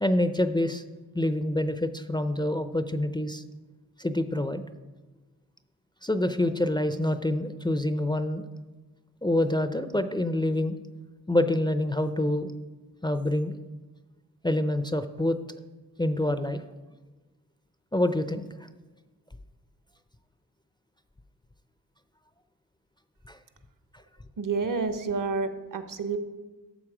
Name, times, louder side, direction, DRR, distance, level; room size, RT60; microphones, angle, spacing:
voice 1, 0.0-0.8 1.1-3.4 4.0-4.6 6.0-8.4 9.2-10.8 11.3-12.5 13.0-13.6 14.4-15.4 16.0-16.6 17.9-18.4 23.3-23.4, left 1 dB, 10° left, 9 dB, 0.5 m, -26 dB
voice 2, 24.4-26.2, right 4 dB, 60° right, 10 dB, 1.0 m, -29 dB
12.5 x 6.8 x 4.9 m, 1.2 s
cardioid pair, 70°, 37 cm